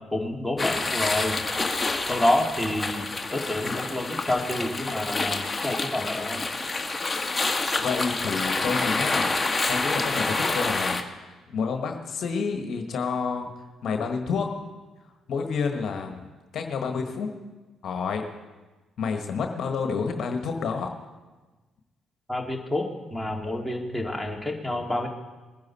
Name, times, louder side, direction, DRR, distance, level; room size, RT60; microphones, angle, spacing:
voice 1, 0.1-1.4 2.0-6.4 22.3-25.1, left 1 dB, 5° left, -1 dB, 2.5 m, -28 dB
sound 1, 0.6-11.0, left 3 dB, 25° left, 1.4 m, -28 dB
voice 2, 7.5-9.3 9.7-13.5 13.8-14.5 15.3-16.3 16.5-17.3 17.8-18.2 19.0-20.9, left 5 dB, 65° left, 4 dB, 1.3 m, -29 dB
21.0 x 10.5 x 4.2 m, 1.2 s
hypercardioid pair, 50°, 0 cm